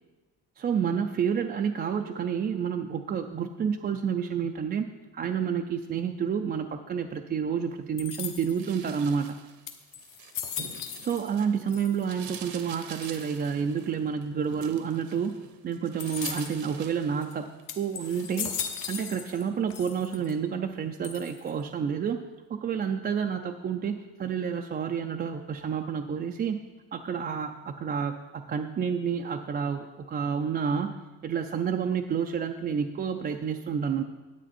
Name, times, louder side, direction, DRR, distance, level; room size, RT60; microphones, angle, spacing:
voice 1, 0.6-9.4 11.0-15.4 15.6-18.5 18.8-22.2 22.5-26.6 26.9-34.0, right 7 dB, 30° right, 4 dB, 0.4 m, -29 dB
sound 1, 8.0-8.7 9.3-9.4 9.7-11.4 11.7-12.3 13.0-13.5 16.0-16.7 17.2-17.3 17.7-19.4 19.7-20.3 21.0-21.6, left 8 dB, 60° left, 1.1 m, -37 dB
sound 2, 8.5-11.6 11.9-17.6 18.0-18.4, right 7 dB, 75° right, 1.1 m, -46 dB
10.0 x 8.8 x 4.3 m, 1.2 s
cardioid pair, 130°, 36 cm